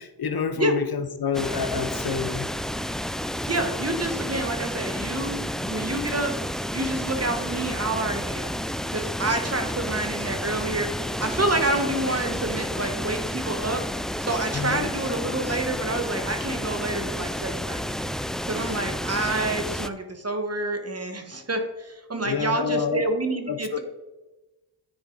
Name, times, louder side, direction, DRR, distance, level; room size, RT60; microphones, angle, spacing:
voice 1, 0.0-2.5 12.8-12.9 14.5-14.9 18.5-18.6 22.2-23.0 23.5-23.8, left 6 dB, 50° left, 9 dB, 0.8 m, -28 dB
sound 1, 1.3-19.9, equal, ahead, 0.3 m, -31 dB
voice 2, 3.5-8.5 8.9-13.8 14.2-17.8 18.5-23.8, right 2 dB, 30° right, 5 dB, 1.4 m, -28 dB
10.0 x 4.6 x 3.9 m, 1.1 s
cardioid pair, 45°, 46 cm